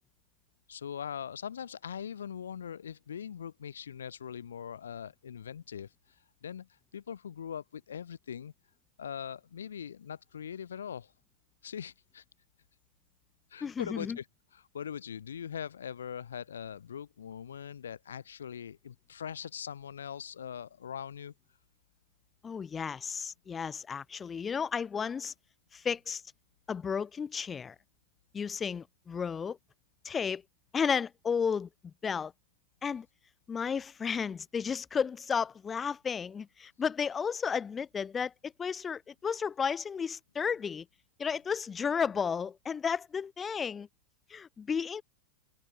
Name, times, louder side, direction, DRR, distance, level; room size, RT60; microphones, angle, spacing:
voice 1, 0.7-5.9 6.4-8.5 9.0-11.1 11.6-12.2 13.5-14.2 14.5-21.3, left 8 dB, 65° left, 2.4 m, -41 dB
voice 2, 13.6-14.2 22.4-25.3 25.7-26.2 26.7-27.7 28.3-29.6 30.0-30.4 30.7-32.3 32.8-33.1 33.5-40.8 41.2-43.9 44.3-45.0, left 6 dB, 20° left, 1.1 m, -33 dB
figure-of-eight pair, 90°, 0 cm